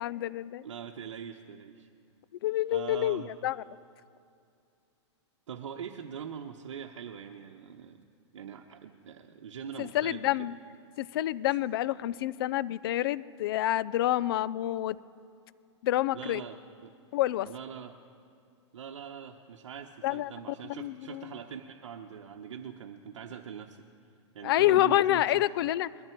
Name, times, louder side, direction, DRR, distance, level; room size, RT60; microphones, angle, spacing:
voice 1, 0.0-0.6 2.4-3.6 9.8-10.6 11.0-15.0 15.8-16.4 17.1-17.5 20.0-20.3 20.6-21.4 24.4-25.9, left 14 dB, 50° left, 19 dB, 0.5 m, -28 dB
voice 2, 0.6-1.9 2.7-3.3 5.5-8.0 8.3-10.5 16.1-16.9 17.4-18.0 18.7-23.9 24.3-25.4, right 8 dB, 90° right, 3 dB, 0.9 m, -42 dB
21.0 x 12.5 x 4.5 m, 2.5 s
hypercardioid pair, 150°, 15 cm